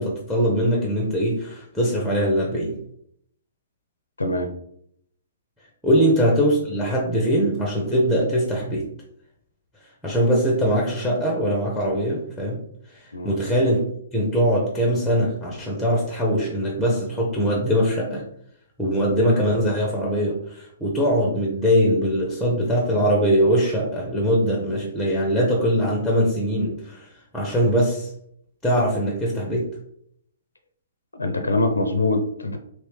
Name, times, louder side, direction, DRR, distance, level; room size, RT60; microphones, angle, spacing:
voice 1, 0.0-2.8 5.8-8.8 10.0-12.6 13.0-13.8 14.1-18.2 18.8-27.1 27.3-28.1 28.6-29.7, equal, ahead, -2 dB, 0.8 m, -22 dB
voice 2, 4.2-4.5 13.1-13.4 31.1-32.6, left 2 dB, 90° left, 6 dB, 0.5 m, -23 dB
3.1 x 3.0 x 3.3 m, 0.70 s
figure-of-eight pair, 125°, 0 cm